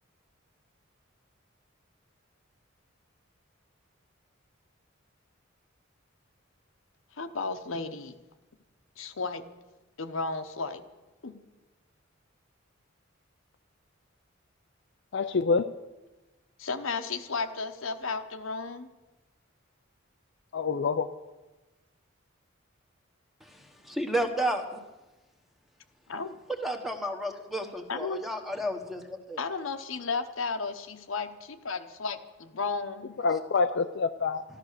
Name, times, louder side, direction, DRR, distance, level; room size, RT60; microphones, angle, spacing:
voice 1, 7.2-8.1 9.0-9.4 10.0-10.8 11.2-11.4 16.6-18.9 26.1-26.4 27.9-28.2 29.4-33.2, left 4 dB, 85° left, 8 dB, 1.0 m, -33 dB
voice 2, 15.1-15.7 20.5-21.1 33.2-34.4, left 4 dB, 60° left, 8 dB, 0.5 m, -26 dB
voice 3, 23.4-24.8 26.6-29.4, right 1 dB, ahead, 4 dB, 1.3 m, -32 dB
13.5 x 12.5 x 6.7 m, 1.1 s
head